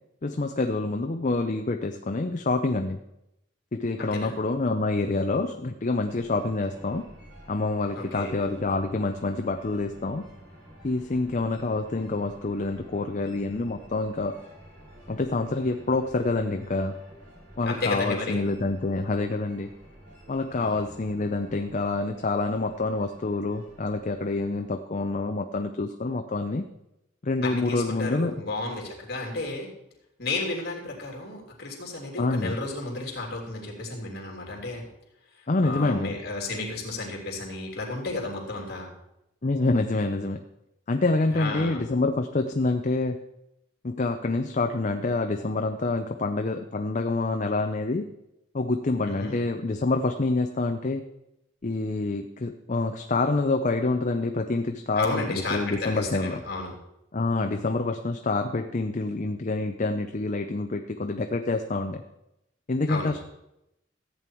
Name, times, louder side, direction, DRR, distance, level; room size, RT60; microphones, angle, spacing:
voice 1, 0.2-3.0 3.7-7.0 7.5-10.2 10.8-14.4 15.1-17.0 17.6-19.7 20.3-26.6 27.2-28.3 32.2-32.5 35.5-36.1 39.4-40.4 40.9-43.2 43.8-48.1 48.5-51.0 51.6-56.4 57.1-62.0 62.7-63.2, left 3 dB, 40° left, 6 dB, 0.6 m, -27 dB
voice 2, 4.0-4.4 7.9-8.3 17.6-18.4 20.6-20.8 27.4-29.7 30.2-34.9 35.3-38.9 41.3-41.8 49.0-49.4 54.9-56.7 62.9-63.1, left 2 dB, 55° left, -1 dB, 3.2 m, -32 dB
sound 1, 6.0-24.6, equal, 70° right, 5.6 m, -50 dB
14.5 x 8.6 x 4.6 m, 0.85 s
head